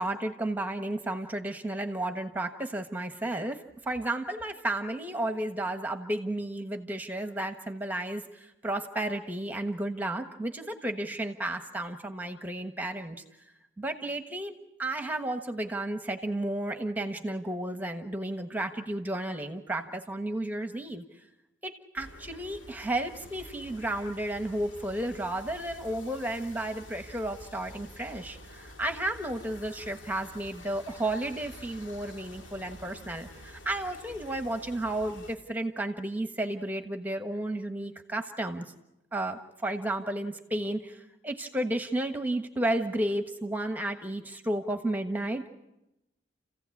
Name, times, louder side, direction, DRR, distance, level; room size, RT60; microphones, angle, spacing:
voice 1, 0.0-13.2 13.8-21.0 21.6-38.6 39.1-45.7, right 1 dB, 10° right, 6 dB, 1.3 m, -33 dB
sound 1, 22.0-35.4, left 1 dB, 90° left, 2.3 m, -49 dB
30.0 x 16.0 x 8.5 m, 0.94 s
head